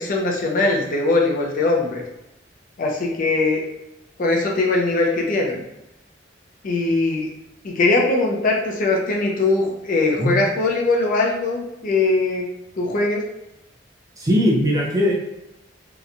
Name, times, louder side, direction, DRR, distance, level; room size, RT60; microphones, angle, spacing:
voice 1, 0.0-2.0 2.8-3.6 4.2-5.6 6.6-7.3 7.6-12.4 12.8-13.2, left 2 dB, 45° left, -1 dB, 0.5 m, -21 dB
voice 2, 14.2-15.1, equal, 20° right, -3 dB, 0.5 m, -19 dB
2.8 x 2.1 x 2.5 m, 0.87 s
head